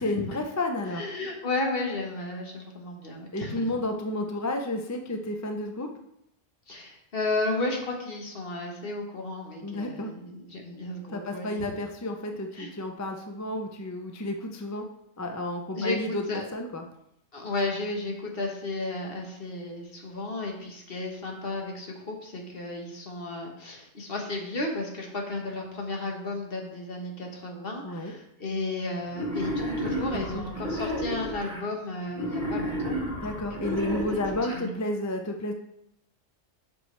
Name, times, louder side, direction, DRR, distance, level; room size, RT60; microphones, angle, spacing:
voice 1, 0.0-1.0 3.3-5.9 9.6-10.1 11.1-14.9 15.2-16.3 16.5-16.8 27.8-28.1 30.1-30.8 33.2-35.5, left 1 dB, 20° left, 4 dB, 0.4 m, -31 dB
voice 2, 0.9-3.7 6.7-11.7 12.5-12.7 15.7-16.0 16.3-16.4 17.3-34.0 34.5-34.7, left 2 dB, 50° left, 1 dB, 1.5 m, -33 dB
Wild animals, 29.1-31.6 32.1-34.6, equal, 40° right, 1.9 m, -32 dB
8.0 x 6.1 x 3.3 m, 0.78 s
omnidirectional pair, 1.2 m